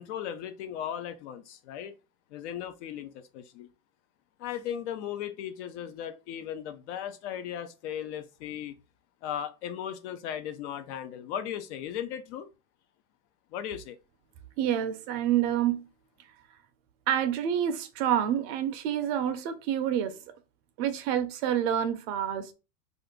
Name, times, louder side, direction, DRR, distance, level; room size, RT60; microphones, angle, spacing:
voice 1, 0.0-2.0 2.3-3.7 4.4-8.8 9.2-12.5 13.5-14.0, left 9 dB, 50° left, 0.4 m, -37 dB
voice 2, 14.6-15.8 17.1-20.2 20.8-22.5, right 10 dB, 45° right, 0.5 m, -28 dB
2.5 x 2.4 x 3.6 m
hypercardioid pair, 120°, 46 cm